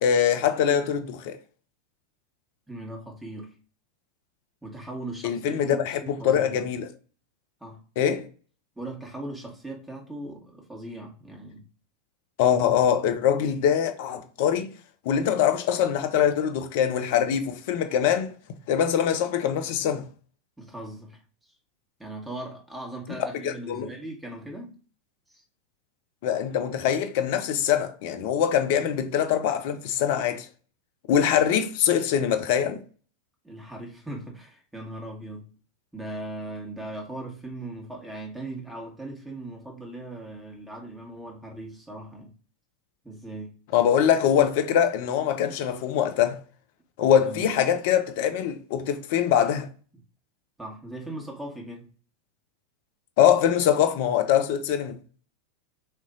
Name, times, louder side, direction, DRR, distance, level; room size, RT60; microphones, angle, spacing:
voice 1, 0.0-1.4 5.2-6.9 8.0-8.3 12.4-14.7 15.0-18.3 18.7-20.0 23.4-23.9 26.2-30.5 31.1-32.8 43.7-46.4 47.0-49.7 53.2-55.0, left 9 dB, 55° left, 0.7 m, -23 dB
voice 2, 2.7-3.5 4.6-6.6 7.6-7.8 8.8-11.6 20.6-21.6 22.0-24.7 25.3-25.4 33.4-35.5 35.9-42.3 43.0-43.5 47.2-47.6 50.6-51.9, right 1 dB, 5° right, 1.6 m, -39 dB
4.3 x 3.0 x 3.9 m
hypercardioid pair, 90°, 0 cm